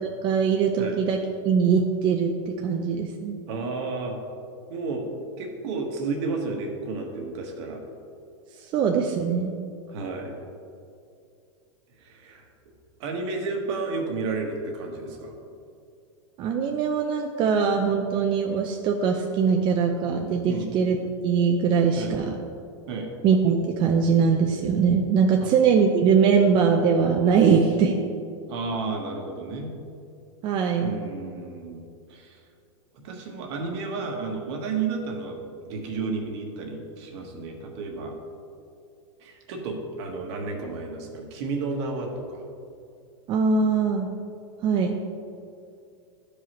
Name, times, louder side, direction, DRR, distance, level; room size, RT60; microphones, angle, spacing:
voice 1, 0.2-3.4 8.6-9.5 16.4-21.0 21.2-22.4 23.2-27.9 30.4-31.1 43.3-44.1 44.6-45.0, right 6 dB, 30° right, 2 dB, 0.5 m, -22 dB
voice 2, 3.5-4.2 4.7-5.1 5.4-7.8 9.9-10.4 12.0-12.5 13.0-15.3 20.5-20.7 22.0-22.1 22.9-23.1 25.4-25.5 27.5-27.6 28.5-29.7 30.8-31.8 32.1-32.4 33.0-35.4 35.7-38.1 39.2-42.4, right 4 dB, 60° right, 2 dB, 1.3 m, -32 dB
11.5 x 4.9 x 3.0 m, 2.4 s
supercardioid pair, 135°, 16 cm